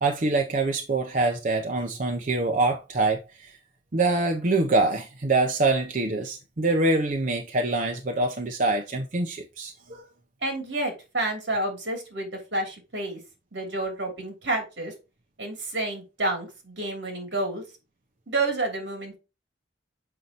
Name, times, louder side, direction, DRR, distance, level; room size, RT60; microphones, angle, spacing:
voice 1, 0.0-3.6 3.9-10.1, right 2 dB, 45° right, 0.6 m, -25 dB
voice 2, 10.4-13.2 13.5-14.9 15.4-17.6 18.3-19.2, right 2 dB, 75° right, 2.8 m, -29 dB
6.7 x 5.2 x 2.9 m
head